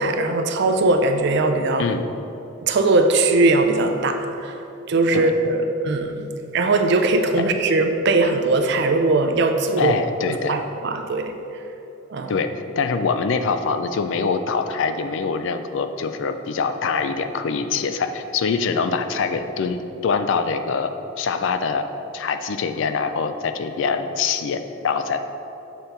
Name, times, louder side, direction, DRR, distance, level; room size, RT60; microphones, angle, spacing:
voice 1, 0.0-1.9 2.6-4.6 4.9-6.3 6.5-9.9 10.3-11.3 12.1-12.4, right 2 dB, 55° right, 6 dB, 0.4 m, -20 dB
voice 2, 1.8-2.1 5.1-5.3 7.4-7.5 9.8-10.6 12.3-12.5 12.8-20.9 21.2-21.8 22.1-25.2, left 5 dB, 60° left, 9 dB, 0.4 m, -24 dB
7.1 x 4.4 x 3.8 m, 3.0 s
head